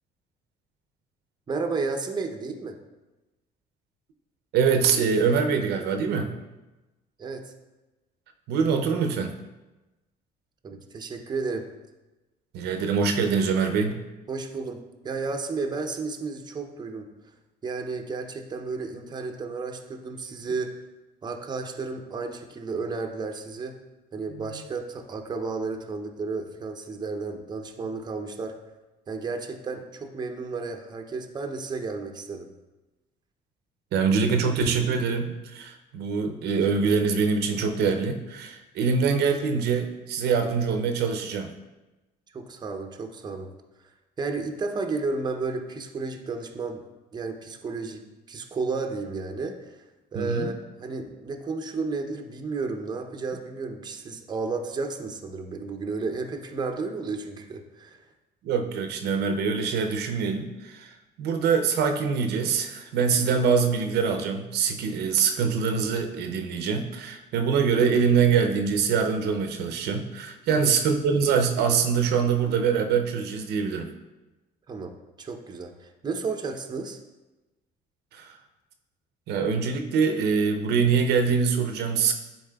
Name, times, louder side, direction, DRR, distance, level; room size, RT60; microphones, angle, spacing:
voice 1, 1.5-2.7 7.2-7.4 10.6-11.7 14.3-17.1 17.6-20.7 21.2-23.7 24.1-28.6 29.1-32.5 42.3-43.5 44.2-46.8 47.1-49.8 50.1-50.5 50.8-58.0 70.5-70.8 74.7-74.9 75.2-77.0, right 4 dB, 25° right, 4 dB, 0.6 m, -32 dB
voice 2, 4.5-6.3 8.5-9.3 12.5-14.0 24.3-24.6 33.9-41.5 50.1-50.5 58.4-73.9 78.1-78.3 79.3-82.1, right 6 dB, 75° right, 6 dB, 0.6 m, -24 dB
10.0 x 4.1 x 2.3 m, 1.1 s
cardioid pair, 110°, 17 cm